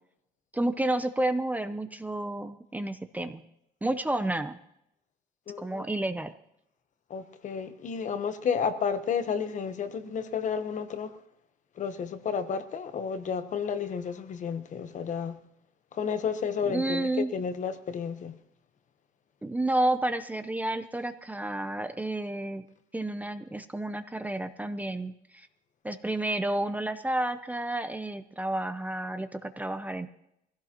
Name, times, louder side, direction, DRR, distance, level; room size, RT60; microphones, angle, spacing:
voice 1, 0.5-3.4 3.8-4.6 5.6-6.3 16.6-17.3 19.4-22.6 22.9-25.5 25.8-30.1, right 1 dB, 10° right, 0.6 m, -30 dB
voice 2, 5.5-5.8 7.1-11.2 11.8-15.4 15.9-18.4, left 6 dB, 45° left, 1.0 m, -31 dB
21.0 x 16.0 x 3.0 m
cardioid pair, 110°, 17 cm